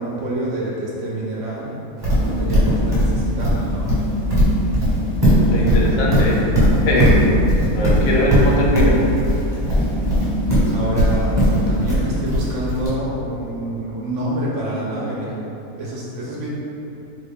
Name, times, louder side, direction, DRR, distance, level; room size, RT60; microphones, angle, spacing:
voice 1, 0.0-1.7 2.1-3.9 10.7-15.4 15.8-16.5, right 1 dB, 65° right, -5 dB, 0.8 m, -27 dB
Livestock farm animals working animals, 2.0-12.9, equal, 20° right, 1.1 m, -17 dB
voice 2, 5.5-6.4 6.9-7.2 7.7-9.0, left 1 dB, 75° left, -4 dB, 1.0 m, -21 dB
3.4 x 2.2 x 3.5 m, 2.9 s
omnidirectional pair, 1.5 m